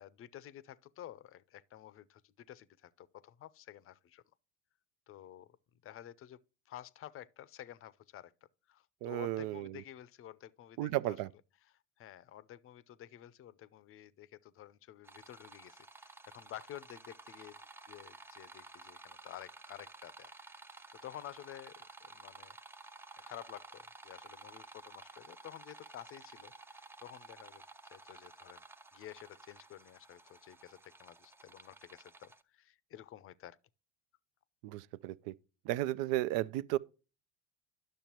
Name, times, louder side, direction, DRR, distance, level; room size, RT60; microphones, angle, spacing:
voice 1, 0.0-4.2 5.1-5.6 5.8-6.4 6.7-8.3 8.7-11.2 11.7-17.6 17.8-20.3 20.6-22.5 23.2-27.6 27.9-28.6 28.9-33.6, left 12 dB, 40° left, 0.6 m, -51 dB
voice 2, 9.0-9.8 10.8-11.3 34.6-35.3 35.6-36.8, right 15 dB, 65° right, 0.5 m, -34 dB
sound 1, 15.0-32.4, right 3 dB, 5° right, 0.4 m, -54 dB
10.5 x 6.5 x 2.9 m
hypercardioid pair, 85°, 34 cm